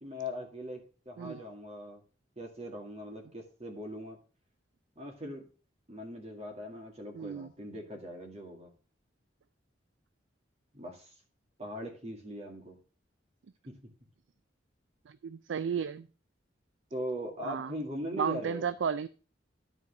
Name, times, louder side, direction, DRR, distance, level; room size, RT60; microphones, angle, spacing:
voice 1, 0.0-2.0 2.4-4.2 5.0-5.4 5.9-8.7 10.7-11.1 11.6-12.8 13.7-13.8 16.9-18.7, equal, 35° right, 2.1 m, -40 dB
voice 2, 7.1-7.5 15.1-16.1 17.4-17.7 18.2-19.1, right 7 dB, 75° right, 0.4 m, -33 dB
12.0 x 4.5 x 5.8 m
head